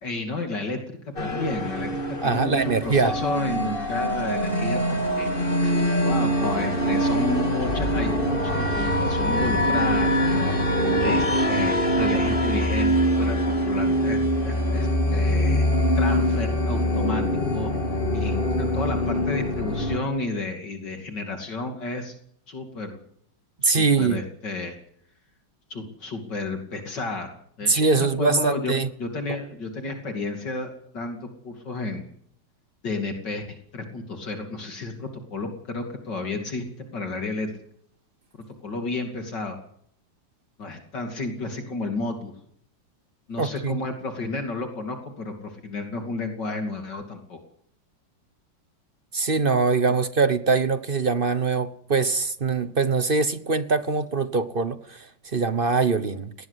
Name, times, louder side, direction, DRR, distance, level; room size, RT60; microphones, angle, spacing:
voice 1, 0.0-5.3 5.6-10.5 11.0-12.9 13.2-15.6 15.9-17.2 17.5-17.7 18.1-22.1 22.5-23.0 23.6-24.8 25.7-28.7 29.0-32.0 32.8-37.5 38.6-39.6 40.6-42.3 43.3-47.4, left 3 dB, 65° left, 3.2 m, -32 dB
sound 1, 1.2-20.0, equal, 25° left, 2.6 m, -23 dB
voice 2, 2.2-3.1 23.6-24.2 27.7-28.9 43.4-43.8 49.1-56.3, right 4 dB, 35° right, 1.0 m, -23 dB
20.0 x 18.5 x 8.2 m
omnidirectional pair, 2.0 m